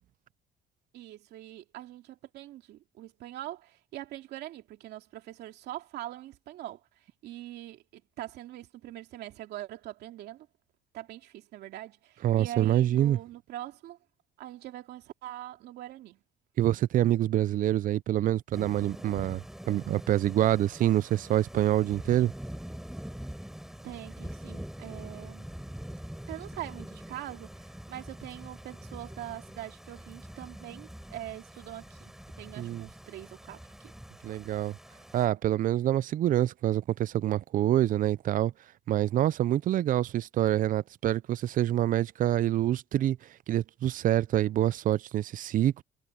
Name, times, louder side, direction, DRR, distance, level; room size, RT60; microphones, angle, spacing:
voice 1, 0.9-6.8 7.2-10.5 10.9-14.0 14.4-16.2 23.8-25.5 26.3-33.9, right 14 dB, 75° right, 2.7 m, -43 dB
voice 2, 12.2-13.2 16.6-19.4 19.7-22.3 32.6-32.9 34.2-34.7 35.1-38.5 38.9-43.2 43.5-45.8, right 12 dB, 55° right, 0.5 m, -26 dB
Thunder / Rain, 18.5-35.3, equal, ahead, 5.0 m, -44 dB
cardioid pair, 110°, 17 cm